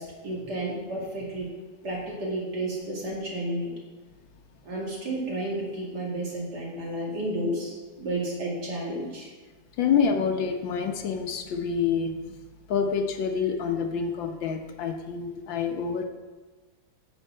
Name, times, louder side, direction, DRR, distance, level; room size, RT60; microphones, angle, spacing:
voice 1, 0.0-1.5 1.8-3.7 4.6-9.3, right 1 dB, 55° right, -3 dB, 3.0 m, -32 dB
voice 2, 9.8-12.2 12.7-16.0, left 6 dB, 75° left, 5 dB, 1.6 m, -27 dB
10.0 x 6.9 x 5.5 m, 1.3 s
omnidirectional pair, 2.1 m